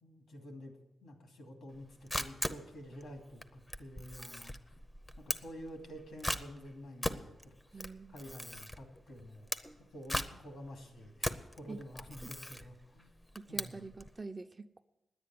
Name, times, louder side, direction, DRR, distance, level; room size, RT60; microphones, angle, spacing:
voice 1, 0.0-4.8 5.2-9.5 9.9-13.1 13.5-13.9, equal, 85° left, 3 dB, 2.6 m, -49 dB
Camera, 1.7-14.1, left 1 dB, 15° left, 0.8 m, -40 dB
voice 2, 7.7-8.2 11.7-11.8 13.3-14.8, right 3 dB, 30° right, 8 dB, 0.7 m, -45 dB
10.0 x 8.9 x 9.4 m, 0.96 s
cardioid pair, 75°, 0 cm